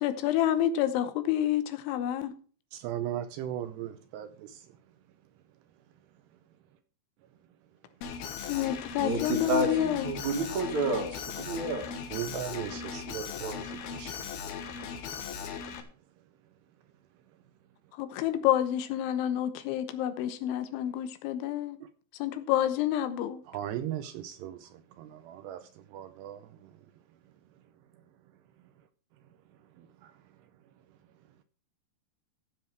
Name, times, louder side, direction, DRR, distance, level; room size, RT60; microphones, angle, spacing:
voice 1, 0.0-2.3 8.5-10.1 17.9-21.8 22.2-23.4, left 11 dB, 85° left, 3.4 m, -28 dB
voice 2, 2.7-4.7 12.1-14.3 23.5-26.7 29.8-30.1, right 11 dB, 80° right, 2.5 m, -38 dB
Alarm, 8.0-15.8, left 6 dB, 65° left, 3.0 m, -38 dB
voice 3, 9.0-11.9, right 2 dB, 55° right, 2.5 m, -30 dB
15.0 x 7.3 x 4.6 m
omnidirectional pair, 5.3 m